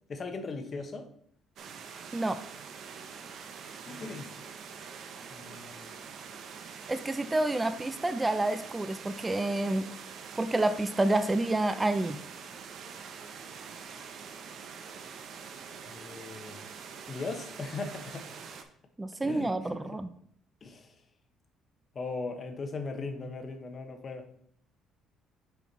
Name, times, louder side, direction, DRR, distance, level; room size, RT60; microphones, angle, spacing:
voice 1, 0.1-1.1 3.8-4.3 5.3-6.1 15.9-16.6 17.1-18.3 19.2-19.8 20.6-20.9 21.9-24.3, left 3 dB, 35° left, 6 dB, 1.0 m, -38 dB
sound 1, 1.6-18.6, right 6 dB, 55° right, 0.8 m, -45 dB
voice 2, 6.9-9.9 10.4-12.2 19.0-20.1, right 2 dB, 15° right, 10 dB, 0.4 m, -28 dB
6.9 x 4.6 x 4.1 m, 0.64 s
cardioid pair, 125°, 0 cm